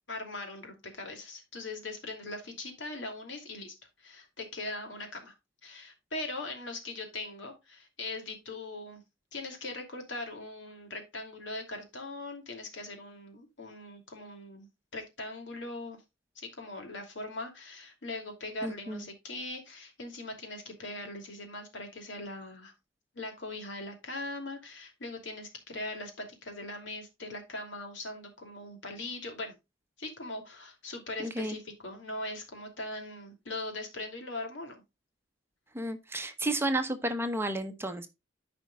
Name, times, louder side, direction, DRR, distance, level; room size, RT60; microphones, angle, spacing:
voice 1, 0.1-5.3 5.6-9.0 9.3-14.7 14.9-16.0 16.4-22.7 23.1-29.5 30.0-34.8, left 2 dB, 75° left, 2.7 m, -40 dB
voice 2, 18.6-19.0 31.2-31.5 35.7-38.1, right 1 dB, 15° right, 0.8 m, -32 dB
13.5 x 5.2 x 2.3 m
head